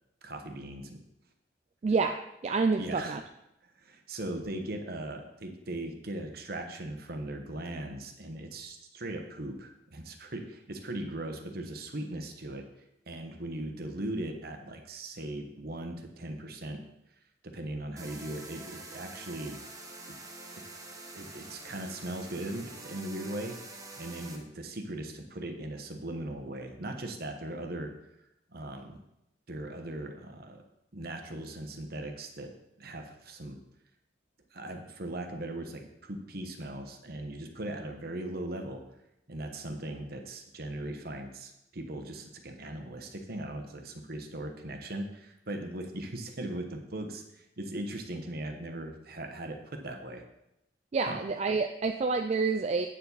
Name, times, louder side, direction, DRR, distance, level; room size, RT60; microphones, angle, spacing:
voice 1, 0.2-1.0 2.7-3.2 3.8-12.7 13.1-16.8 17.4-19.6 21.1-23.5 24.0-27.9 28.5-29.0 29.5-30.6 30.9-32.5 32.8-33.6 34.5-38.8 39.3-50.2 51.1-51.2, right 1 dB, 60° right, 5 dB, 1.1 m, -39 dB
voice 2, 1.8-2.2 2.4-3.2 50.9-52.9, right 4 dB, 35° right, 5 dB, 0.3 m, -28 dB
sound 1, 18.0-24.4, right 2 dB, 20° right, 1.1 m, -46 dB
8.7 x 7.1 x 4.1 m, 0.86 s
head